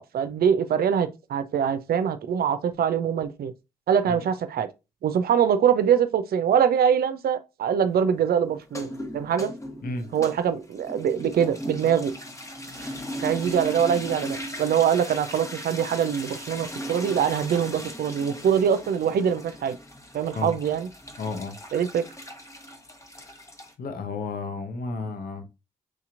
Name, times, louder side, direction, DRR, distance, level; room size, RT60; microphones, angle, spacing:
voice 1, 0.0-3.5 3.9-4.7 5.0-9.5 10.1-12.1 12.8-12.9 13.2-19.8 20.1-20.9 21.7-22.1, right 8 dB, 65° right, 0.5 m, -23 dB
sound 1, 8.6-23.7, equal, 20° left, 1.1 m, -38 dB
voice 2, 21.2-21.6 23.3-23.4 23.8-25.4, left 3 dB, 60° left, 0.8 m, -32 dB
6.2 x 2.8 x 2.5 m
hypercardioid pair, 40°, 17 cm